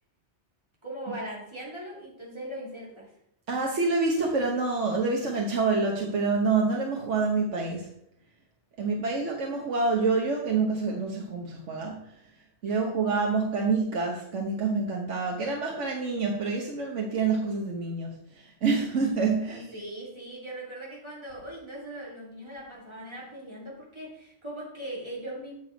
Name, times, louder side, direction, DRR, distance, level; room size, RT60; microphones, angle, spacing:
voice 1, 0.8-3.1 12.6-12.8 19.5-25.5, right 1 dB, 25° right, -4 dB, 3.0 m, -40 dB
voice 2, 3.5-7.9 8.8-12.0 12.6-19.6, right 4 dB, 85° right, 0 dB, 1.5 m, -27 dB
9.3 x 6.1 x 5.1 m, 0.76 s
omnidirectional pair, 1.2 m